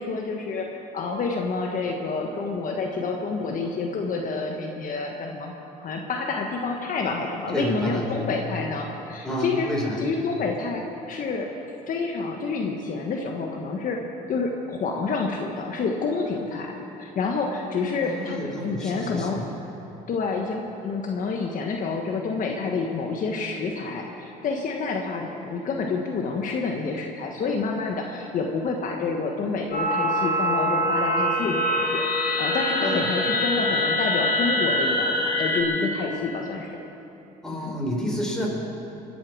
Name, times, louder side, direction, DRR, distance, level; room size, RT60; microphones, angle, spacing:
voice 1, 0.0-9.7 10.0-11.5 11.9-14.0 14.3-19.4 20.1-32.0 32.4-36.8 37.5-37.8, left 4 dB, 50° left, 1 dB, 1.3 m, -28 dB
voice 2, 7.5-8.3 9.2-10.0 18.0-19.4 32.8-33.1 37.4-38.5, equal, 5° left, -3 dB, 4.3 m, -29 dB
sound 1, 29.7-35.6, left 1 dB, 65° left, 2.8 m, -24 dB
24.0 x 8.7 x 6.3 m, 2.9 s
cardioid pair, 110°, 17 cm